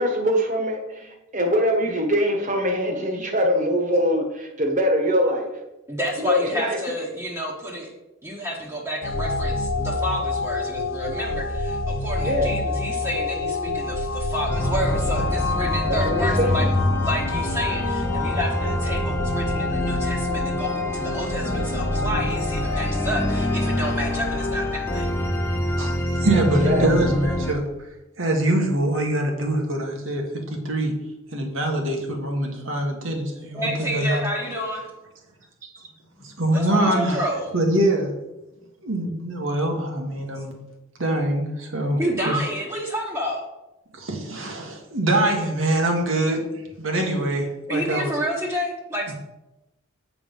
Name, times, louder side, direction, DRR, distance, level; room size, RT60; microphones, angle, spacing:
voice 1, 0.0-5.5 6.2-6.8 12.2-12.5 15.9-16.7 26.6-27.1, equal, 40° right, 2 dB, 1.5 m, -23 dB
voice 2, 5.9-7.9 8.2-16.7 17.0-25.0 33.5-34.9 36.1-37.5 42.0-43.4 47.7-49.1, equal, 15° right, -4 dB, 1.1 m, -30 dB
sound 1, 9.0-24.6, left 3 dB, 75° left, 0.7 m, -28 dB
sound 2, 14.5-27.5, left 1 dB, 15° left, 0.8 m, -26 dB
voice 3, 25.8-27.9 28.2-29.8 30.1-30.2 30.5-30.9 31.3-34.2 36.2-37.3 37.5-38.1 38.8-40.5 41.0-42.0 42.3-42.4 43.9-46.4 46.8-48.1 49.1-49.2, right 1 dB, 80° right, 1 dB, 1.8 m, -24 dB
8.7 x 5.0 x 5.5 m, 0.97 s
head